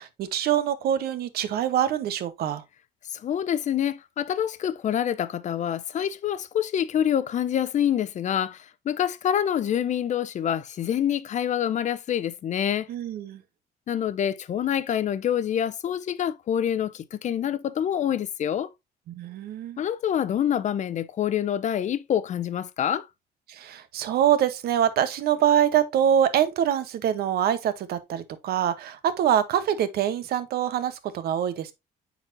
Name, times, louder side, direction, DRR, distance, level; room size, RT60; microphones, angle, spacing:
voice 1, 0.0-2.6 12.9-13.4 19.1-19.8 23.5-31.7, right 10 dB, 70° right, 0.9 m, -24 dB
voice 2, 3.1-12.9 13.9-18.7 19.8-23.1, left 9 dB, 45° left, 0.6 m, -26 dB
8.8 x 4.1 x 2.6 m
cardioid pair, 110°, 17 cm